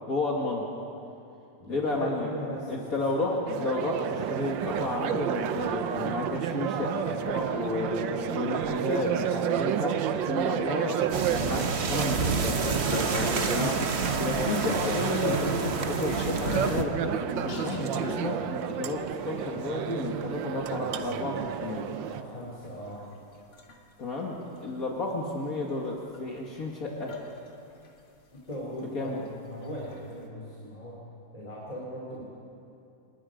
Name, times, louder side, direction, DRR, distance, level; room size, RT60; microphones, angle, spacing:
voice 1, 0.1-0.7 1.7-2.3 2.7-10.0 10.3-11.0 11.3-11.6 11.9-12.6 13.5-13.8 14.2-21.9 24.0-27.2 28.9-29.2, left 2 dB, 50° left, -2 dB, 2.2 m, -32 dB
voice 2, 1.6-2.8 3.1-3.3 11.3-11.7 22.0-23.0 28.5-31.0 31.3-32.2, equal, 20° left, -5 dB, 3.0 m, -39 dB
sound 1, 3.5-22.2, right 10 dB, 90° right, 1.5 m, -31 dB
sound 2, 11.1-16.8, right 5 dB, 40° right, 1.1 m, -29 dB
sound 3, 12.1-12.2 12.4-14.0 14.3-15.6 16.0-16.9 17.3-18.5 19.3-19.4 21.1-21.3 23.0-23.1 23.5-23.7 26.1-26.2 26.6-26.7 27.1-27.5 29.9-30.0, left 3 dB, 80° left, 2.5 m, -34 dB
27.0 x 20.0 x 5.1 m, 2.7 s
omnidirectional pair, 2.0 m